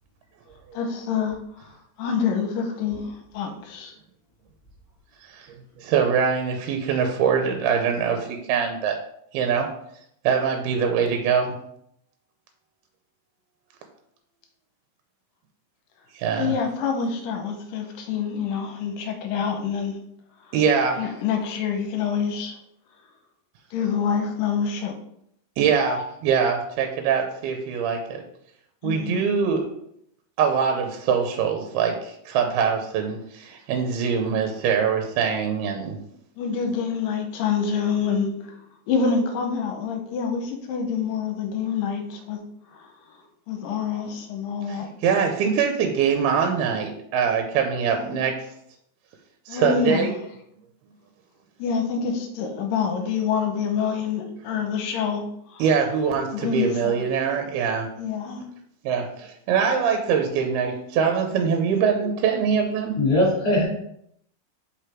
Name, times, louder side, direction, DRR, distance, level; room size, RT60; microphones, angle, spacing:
voice 1, 0.7-1.4 2.0-3.9 16.4-19.9 21.0-22.6 23.7-24.9 28.8-29.2 36.4-38.5 38.9-42.4 43.5-44.9 47.9-48.3 49.5-50.2 51.6-55.2 55.5-55.7 56.3-56.9 58.0-58.4 59.8-59.9 61.3-61.6, left 6 dB, 75° left, 4 dB, 2.3 m, -26 dB
voice 2, 5.3-9.0 9.3-9.7 10.2-11.6 16.2-16.5 20.5-21.0 25.6-28.2 28.8-29.7 30.4-36.0 44.7-48.4 49.5-50.1 55.6-57.9 58.9-63.0, right 6 dB, 90° right, 4 dB, 2.6 m, -23 dB
voice 3, 63.0-63.6, left 1 dB, 25° left, -7 dB, 2.5 m, -20 dB
5.2 x 5.1 x 4.5 m, 0.73 s
omnidirectional pair, 4.5 m